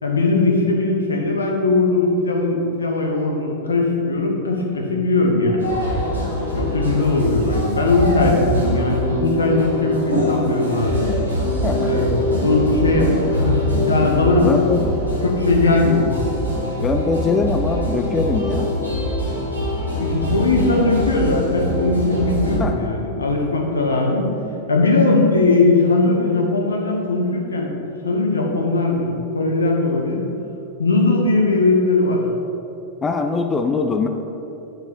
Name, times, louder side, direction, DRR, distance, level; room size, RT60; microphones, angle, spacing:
voice 1, 0.0-5.6 6.5-11.0 11.9-14.5 15.2-16.1 20.0-24.3 24.7-27.7 28.0-30.2 30.8-32.2, left 3 dB, 75° left, 0 dB, 1.0 m, -19 dB
sound 1, 5.6-22.6, left 1 dB, 90° right, 1.6 m, -23 dB
voice 2, 11.6-12.0 14.4-14.9 16.8-18.7 22.6-22.9 33.0-34.1, left 4 dB, 20° left, 5 dB, 0.4 m, -22 dB
8.3 x 4.7 x 4.5 m, 3.0 s
figure-of-eight pair, 90°, 0 cm